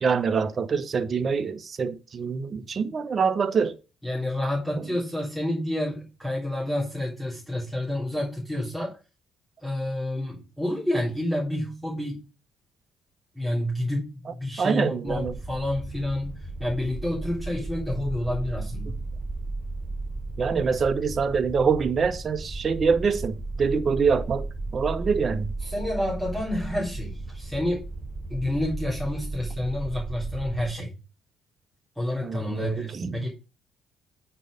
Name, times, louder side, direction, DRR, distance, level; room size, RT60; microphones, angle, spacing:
voice 1, 0.0-3.8 14.6-15.3 20.4-25.5 32.2-33.2, right 5 dB, 40° right, 0.9 m, -25 dB
voice 2, 4.0-9.0 9.6-12.2 13.4-19.0 25.6-27.9 28.3-30.9 32.0-33.3, left 1 dB, ahead, 3.4 m, -29 dB
sound 1, 15.1-30.7, right 2 dB, 15° right, 1.0 m, -35 dB
9.1 x 4.6 x 5.1 m
cardioid pair, 95°, 0 cm